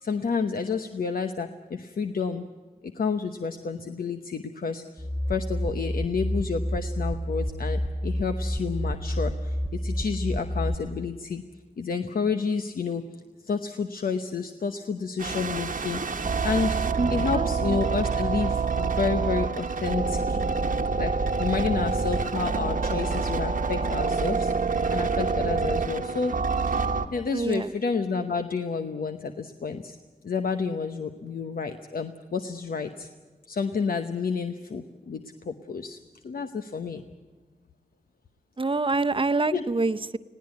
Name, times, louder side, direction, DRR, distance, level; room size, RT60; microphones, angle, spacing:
voice 1, 0.0-2.4 2.8-11.4 11.8-13.0 13.4-16.8 17.1-20.4 21.0-21.1 21.4-24.5 24.9-30.0 30.2-33.1 33.5-37.0 39.5-39.6, left 5 dB, 90° left, 7 dB, 1.0 m, -30 dB
sound 1, 5.0-10.8, equal, 5° left, 0.9 m, -29 dB
sound 2, 15.2-27.0, right 4 dB, 70° right, 1.3 m, -27 dB
voice 2, 17.0-17.5 27.3-27.7 38.6-40.2, right 3 dB, 35° right, 10 dB, 0.8 m, -26 dB
20.5 x 17.5 x 9.4 m, 1.3 s
wide cardioid pair, 85°, 15 cm